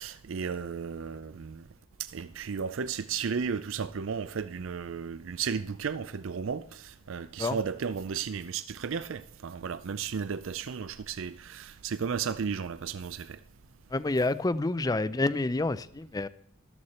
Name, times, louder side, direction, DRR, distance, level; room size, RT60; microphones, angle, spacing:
voice 1, 0.0-1.6 2.0-13.4, right 6 dB, 65° right, 0.4 m, -34 dB
voice 2, 13.9-16.3, left 2 dB, 15° left, 0.4 m, -28 dB
13.0 x 13.0 x 4.3 m
head